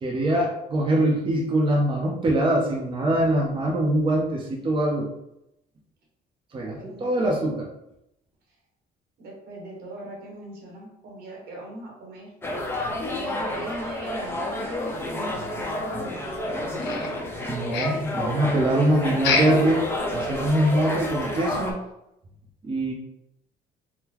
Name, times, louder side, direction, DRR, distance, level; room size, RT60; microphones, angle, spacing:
voice 1, 0.0-5.1 6.5-7.6 17.5-19.8 20.1-21.8 22.6-22.9, right 1 dB, 30° right, -2 dB, 0.6 m, -23 dB
voice 2, 6.6-7.4 9.2-12.3 13.1-16.6, right 1 dB, 70° right, -1 dB, 1.1 m, -39 dB
sound 1, 12.4-21.7, left 1 dB, 15° left, 0.6 m, -30 dB
sound 2, 16.8-17.4 17.7-18.2 19.2-19.7 20.0-20.1 20.6-20.7 21.2-21.3, left 5 dB, 85° left, 0.6 m, -27 dB
3.7 x 2.1 x 2.9 m, 0.85 s
cardioid pair, 110°, 17 cm